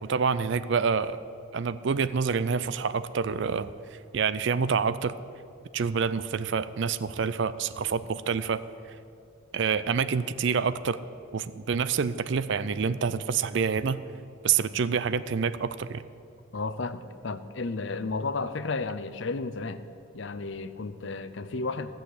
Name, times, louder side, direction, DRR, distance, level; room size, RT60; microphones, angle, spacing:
voice 1, 0.0-1.2 1.5-3.7 4.1-5.1 5.7-8.6 9.5-11.0 11.3-14.0 14.4-16.0, right 6 dB, 60° right, 15 dB, 0.4 m, -27 dB
voice 2, 16.5-19.8 20.1-21.9, left 3 dB, 60° left, 13 dB, 0.6 m, -33 dB
15.5 x 6.5 x 8.2 m, 2.4 s
head